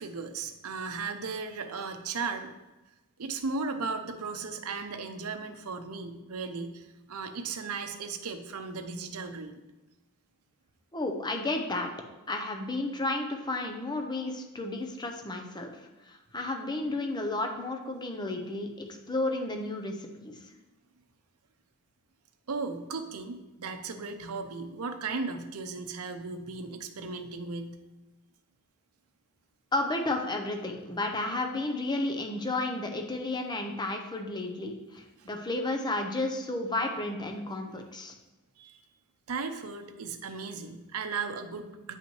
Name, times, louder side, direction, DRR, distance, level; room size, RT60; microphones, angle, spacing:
voice 1, 0.0-2.5 3.2-9.6 22.5-27.8 35.2-35.3 37.7-37.8 38.6-38.8 39.3-42.0, right 4 dB, 75° right, 6 dB, 0.7 m, -36 dB
voice 2, 10.9-11.9 12.3-15.7 16.1-20.3 29.7-38.1, left 2 dB, 20° left, 4 dB, 0.7 m, -32 dB
9.2 x 5.4 x 3.1 m, 1.0 s
head